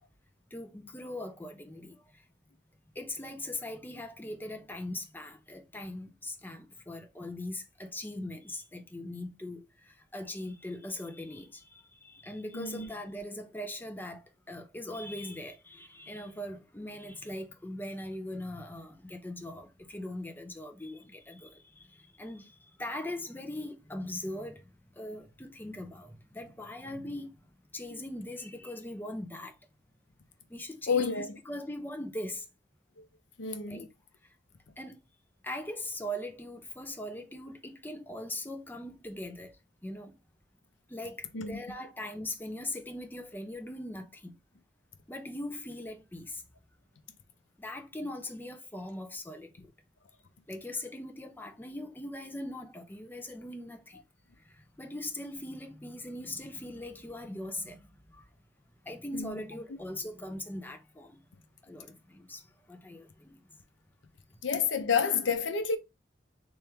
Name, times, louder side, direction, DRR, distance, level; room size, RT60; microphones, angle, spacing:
voice 1, 0.5-2.0 3.0-24.7 25.0-27.3 27.7-29.6 30.5-32.5 33.7-33.9 34.8-35.0 35.4-39.6 39.8-40.1 40.9-44.3 45.1-46.4 47.6-49.5 50.5-54.0 54.8-58.2 58.8-61.2 61.6-62.4 62.7-63.4, left 1 dB, 10° left, 0.6 m, -40 dB
voice 2, 12.5-12.9 30.9-31.4 33.0-33.1 33.4-33.9 41.3-41.6 59.1-59.4 64.4-65.8, left 6 dB, 80° left, 0.6 m, -29 dB
3.4 x 3.0 x 3.3 m
head